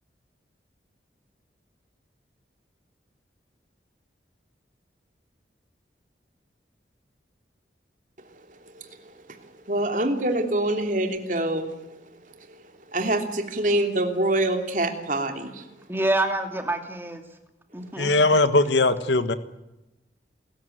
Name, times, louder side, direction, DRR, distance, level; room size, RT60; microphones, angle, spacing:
voice 1, 9.7-11.7 12.9-15.7, right 1 dB, 45° right, 5 dB, 3.1 m, -25 dB
voice 2, 15.9-17.2 17.7-18.3, right 2 dB, 15° right, 5 dB, 2.6 m, -27 dB
voice 3, 18.0-19.3, left 2 dB, 90° left, 11 dB, 1.5 m, -20 dB
28.0 x 14.5 x 9.3 m, 0.97 s
head